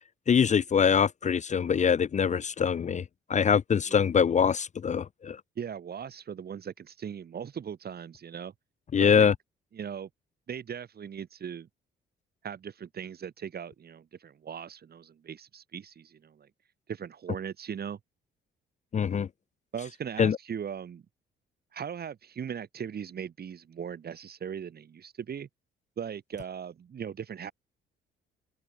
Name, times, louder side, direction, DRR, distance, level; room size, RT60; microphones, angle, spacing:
voice 1, 0.3-3.0 3.3-5.4 8.9-9.3 18.9-19.3 20.2-20.4, left 7 dB, 35° left, 0.6 m, -24 dB
voice 2, 5.6-8.5 9.0-9.3 9.7-10.1 10.5-11.7 12.4-16.5 16.9-18.0 19.7-21.0 21.7-25.5 26.0-27.5, right 8 dB, 50° right, 3.4 m, -39 dB
cardioid pair, 90°, 20 cm